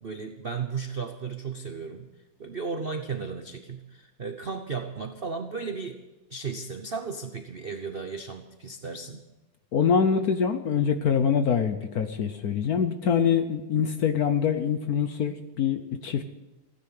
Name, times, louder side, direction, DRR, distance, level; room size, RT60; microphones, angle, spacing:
voice 1, 0.0-2.1 2.4-6.0 6.3-9.2, right 5 dB, 70° right, 6 dB, 0.5 m, -35 dB
voice 2, 9.7-16.3, left 7 dB, 60° left, 8 dB, 1.0 m, -24 dB
16.0 x 9.9 x 7.7 m, 1.1 s
omnidirectional pair, 2.3 m